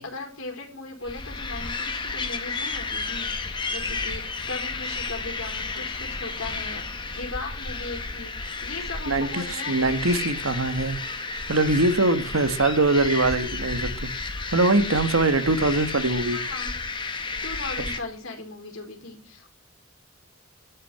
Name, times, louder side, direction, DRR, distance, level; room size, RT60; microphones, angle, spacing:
voice 1, 0.0-10.2 12.2-12.3 16.3-16.7 17.4-19.5, left 3 dB, 75° left, 4.7 m, -38 dB
sound 1, 1.0-18.0, left 4 dB, 20° left, 1.2 m, -32 dB
voice 2, 9.1-11.0 11.5-14.1 14.5-16.4, right 2 dB, 85° right, 1.4 m, -22 dB
12.0 x 6.6 x 8.5 m
head